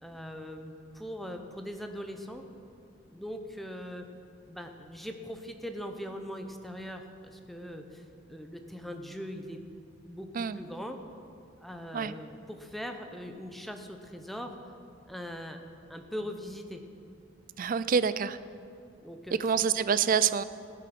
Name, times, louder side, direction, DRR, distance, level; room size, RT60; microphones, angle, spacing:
voice 1, 0.0-2.5 3.1-4.1 4.5-9.6 10.0-11.0 11.6-14.6 15.1-15.6 15.9-16.8 19.0-19.6, equal, ahead, 5 dB, 0.8 m, -41 dB
voice 2, 17.6-18.4 19.4-20.4, right 6 dB, 45° right, 15 dB, 0.4 m, -26 dB
15.5 x 8.4 x 6.0 m, 2.5 s
head